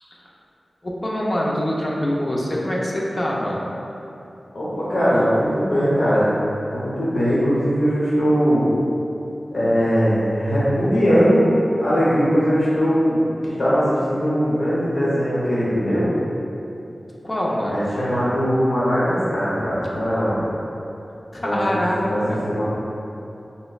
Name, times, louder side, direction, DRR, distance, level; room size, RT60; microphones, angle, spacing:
voice 1, 0.8-3.7 17.2-17.8 21.3-22.4, equal, 40° left, -4 dB, 0.5 m, -24 dB
voice 2, 4.5-6.3 6.7-8.7 9.5-11.5 11.8-16.1 17.7-20.4 21.4-21.8 22.0-22.6, equal, 80° left, -9 dB, 0.9 m, -20 dB
4.9 x 2.0 x 2.3 m, 2.9 s
wide cardioid pair, 85°, 0 cm